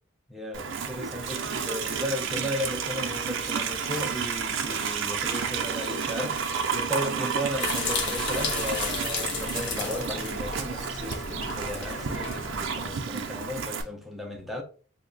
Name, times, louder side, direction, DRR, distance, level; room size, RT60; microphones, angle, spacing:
voice 1, 0.3-14.6, equal, ahead, 0.4 m, -35 dB
Livestock farm animals working animals, 0.5-13.8, right 6 dB, 65° right, 0.4 m, -31 dB
sound 1, 7.6-12.9, left 4 dB, 55° left, 0.6 m, -33 dB
3.2 x 2.1 x 3.8 m
head